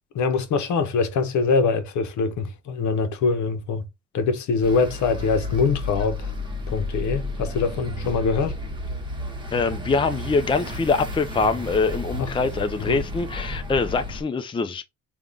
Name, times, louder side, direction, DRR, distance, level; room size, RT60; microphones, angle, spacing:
voice 1, 0.1-3.9 4.1-6.3 6.7-8.6 12.2-12.3 12.8-13.0, left 4 dB, 70° left, 0.8 m, -23 dB
sound 1, 4.6-14.2, left 2 dB, 15° right, 0.9 m, -32 dB
voice 2, 9.5-14.8, left 4 dB, 15° left, 0.4 m, -24 dB
3.7 x 2.3 x 3.7 m
cardioid pair, 90°, 30 cm